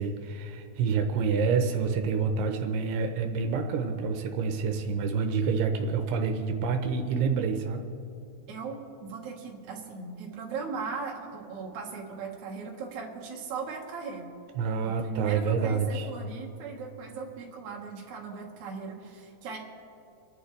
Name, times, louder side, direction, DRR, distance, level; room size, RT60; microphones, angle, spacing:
voice 1, 0.0-7.8 14.6-16.1, right 5 dB, 85° right, 4 dB, 2.9 m, -28 dB
voice 2, 7.1-7.5 8.5-14.3 14.8-19.6, right 5 dB, 55° right, -1 dB, 2.6 m, -38 dB
28.5 x 11.0 x 3.3 m, 2.7 s
omnidirectional pair, 4.7 m